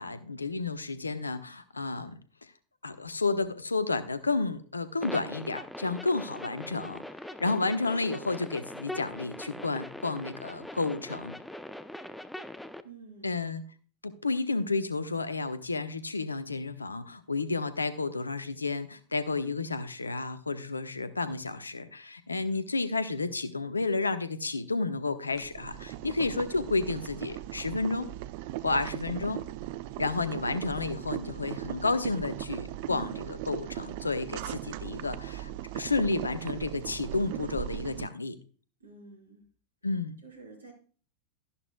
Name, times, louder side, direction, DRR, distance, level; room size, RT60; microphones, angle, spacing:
voice 1, 0.0-2.2 2.8-7.0 7.4-11.4 13.2-13.6 14.0-28.1 28.6-29.4 30.0-35.5 35.7-38.4 39.8-40.2, left 3 dB, 80° left, 12 dB, 1.0 m, -31 dB
sound 1, 5.0-12.8, left 1 dB, 5° left, 0.7 m, -41 dB
voice 2, 12.8-13.4 38.8-39.4 40.2-40.7, right 4 dB, 75° right, 2 dB, 5.0 m, -49 dB
Boiling, 25.3-38.1, right 14 dB, 50° right, 0.6 m, -38 dB
13.0 x 11.5 x 2.3 m, 0.41 s
figure-of-eight pair, 90°, 0 cm